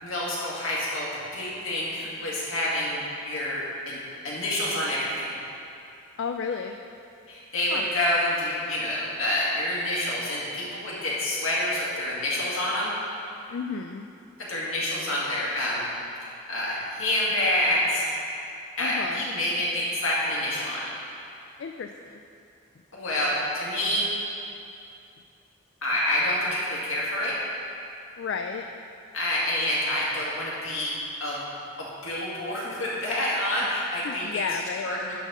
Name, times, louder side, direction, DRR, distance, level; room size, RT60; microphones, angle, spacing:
voice 1, 0.0-4.0 4.2-5.3 7.3-12.9 14.5-15.9 16.2-18.2 18.8-20.9 22.9-24.1 25.8-27.4 29.1-31.4 31.8-35.1, left 1 dB, 80° left, -6 dB, 2.1 m, -28 dB
voice 2, 6.2-6.8 7.7-7.8 13.5-14.1 18.8-19.2 21.6-22.2 28.2-28.7 34.0-34.9, left 6 dB, 60° left, 5 dB, 0.3 m, -32 dB
9.9 x 4.3 x 6.2 m, 2.6 s
head